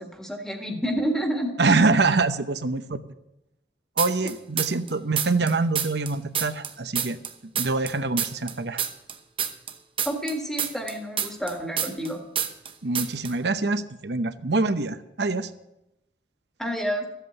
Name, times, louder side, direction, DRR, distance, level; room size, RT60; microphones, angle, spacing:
voice 1, 0.0-1.5 10.0-12.2 16.6-17.1, equal, 5° left, 3 dB, 1.6 m, -29 dB
voice 2, 1.6-3.0 4.0-7.2 7.5-8.8 12.8-15.5, right 3 dB, 75° right, 10 dB, 0.8 m, -25 dB
sound 1, 4.0-4.9 5.2-12.1 12.4-12.7 13.0-13.3, right 8 dB, 30° right, 0.9 m, -27 dB
14.0 x 8.2 x 7.9 m, 0.88 s
head